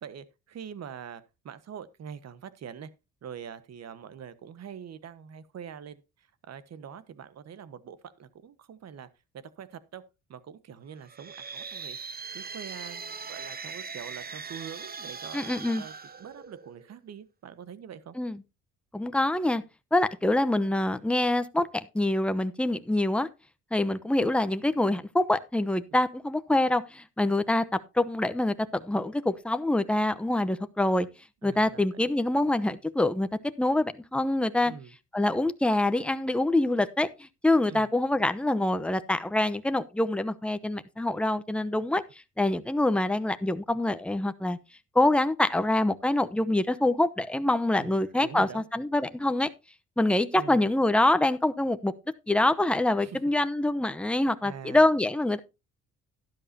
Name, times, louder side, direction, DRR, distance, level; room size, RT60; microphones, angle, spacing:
voice 1, 0.0-2.9 3.2-6.0 6.5-9.1 9.3-10.0 10.3-15.4 15.7-15.9 16.2-18.1 31.4-31.8 34.6-34.9 37.7-37.9 47.7-48.6 50.3-50.7 53.0-53.2 54.4-54.8, right 8 dB, 60° right, 1.3 m, -44 dB
sound 1, 11.0-16.9, right 5 dB, 30° right, 1.1 m, -40 dB
voice 2, 15.3-15.8 18.2-18.4 18.9-19.6 19.9-23.3 23.7-31.1 31.4-33.3 33.6-34.7 35.1-42.0 42.4-44.6 44.9-49.5 50.0-51.9 52.3-55.4, left 1 dB, 5° left, 0.9 m, -25 dB
12.0 x 11.0 x 2.8 m
cardioid pair, 90°, 30 cm